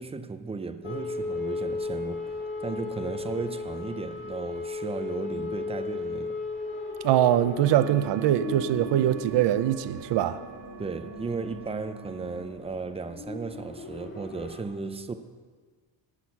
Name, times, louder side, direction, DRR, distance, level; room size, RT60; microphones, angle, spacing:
voice 1, 0.0-6.3 10.8-15.1, right 4 dB, 15° right, 0.4 m, -35 dB
sound 1, 0.8-14.6, left 3 dB, 25° left, 1.9 m, -36 dB
voice 2, 7.0-10.4, right 12 dB, 60° right, 0.6 m, -23 dB
sound 2, 7.6-12.5, right 6 dB, 90° right, 1.3 m, -43 dB
18.0 x 6.3 x 5.9 m
cardioid pair, 155°, 48 cm